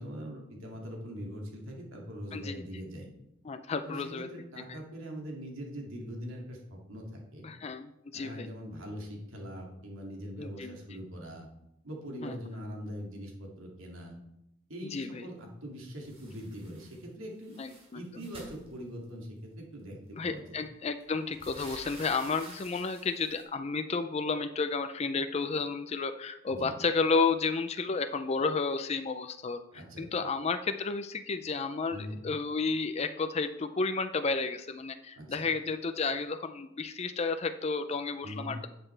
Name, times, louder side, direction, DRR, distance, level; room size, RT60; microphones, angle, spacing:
voice 1, 0.0-3.1 3.8-7.5 8.1-11.5 11.8-14.2 14.7-17.6 17.9-20.6 26.5-26.7 29.7-30.1 31.9-32.2 35.1-35.5 38.2-38.5, equal, 85° right, 0 dB, 2.4 m, -42 dB
voice 2, 2.3-2.6 3.5-4.3 4.7-4.8 7.4-8.5 10.4-10.8 12.2-12.4 14.9-15.3 17.6-18.0 20.1-29.6 30.0-38.7, left 4 dB, 30° left, 8 dB, 0.4 m, -32 dB
sound 1, 16.0-17.0 17.3-19.3 20.2-20.3 20.7-23.4, right 2 dB, 30° right, 2.5 m, -50 dB
12.0 x 7.9 x 3.3 m, 0.82 s
head